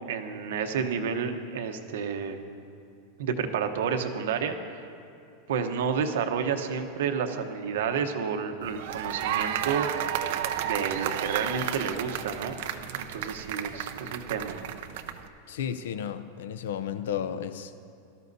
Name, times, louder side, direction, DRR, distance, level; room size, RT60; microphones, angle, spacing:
voice 1, 0.1-2.4 3.2-4.6 5.5-9.9 10.6-12.5 12.9-14.6, right 6 dB, 80° right, 0.9 m, -30 dB
sound 1, 8.6-15.3, right 10 dB, 60° right, 0.6 m, -32 dB
voice 2, 15.5-17.8, left 8 dB, 90° left, 0.6 m, -33 dB
17.5 x 13.5 x 2.7 m
supercardioid pair, 170°, 0 cm